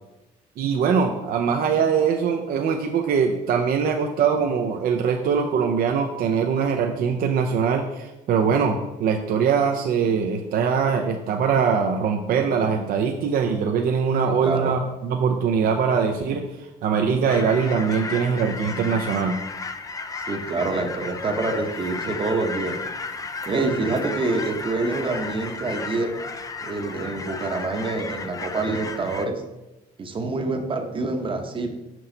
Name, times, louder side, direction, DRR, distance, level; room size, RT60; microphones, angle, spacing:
voice 1, 0.6-19.4, right 6 dB, 60° right, 3 dB, 0.6 m, -22 dB
voice 2, 14.2-14.7 20.3-22.8 23.5-26.2 26.6-29.4 30.0-31.7, right 3 dB, 30° right, 5 dB, 0.9 m, -26 dB
sound 1, 17.3-29.3, left 4 dB, 20° left, 0.4 m, -34 dB
6.1 x 5.6 x 3.8 m, 1.0 s
cardioid pair, 110°, 17 cm